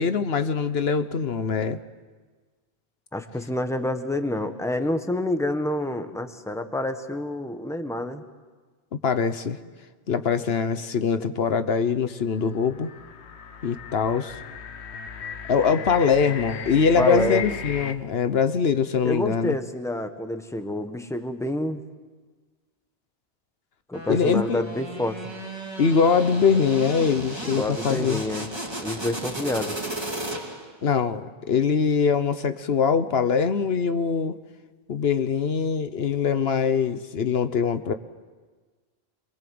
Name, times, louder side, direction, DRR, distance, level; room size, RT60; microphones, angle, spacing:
voice 1, 0.0-1.8 8.9-9.6 10.1-12.9 13.6-14.4 15.5-19.6 24.1-24.6 25.8-28.2 30.8-34.4 34.9-37.9, left 6 dB, 70° left, 10 dB, 1.2 m, -23 dB
voice 2, 3.1-8.2 17.0-17.6 19.0-21.8 23.9-25.2 27.4-28.5 28.8-29.8, left 1 dB, 5° left, 7 dB, 1.3 m, -28 dB
sound 1, 12.3-17.9, left 6 dB, 90° left, 1.2 m, -37 dB
sound 2, 23.9-30.8, right 1 dB, 25° right, 2.6 m, -35 dB
26.5 x 22.5 x 7.8 m, 1.4 s
omnidirectional pair, 1.1 m